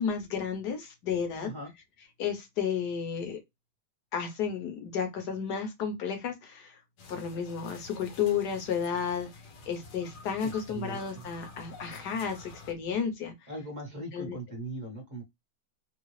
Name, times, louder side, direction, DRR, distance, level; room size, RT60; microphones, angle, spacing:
voice 1, 0.0-1.5 2.2-3.4 4.1-6.8 7.1-9.3 9.7-13.3 14.1-14.4, left 7 dB, 60° left, 1.3 m, -32 dB
sound 1, 7.0-12.7, left 3 dB, 90° left, 1.7 m, -49 dB
voice 2, 10.7-11.3 13.5-15.2, right 1 dB, 30° right, 0.9 m, -39 dB
3.7 x 2.3 x 3.1 m
omnidirectional pair, 2.2 m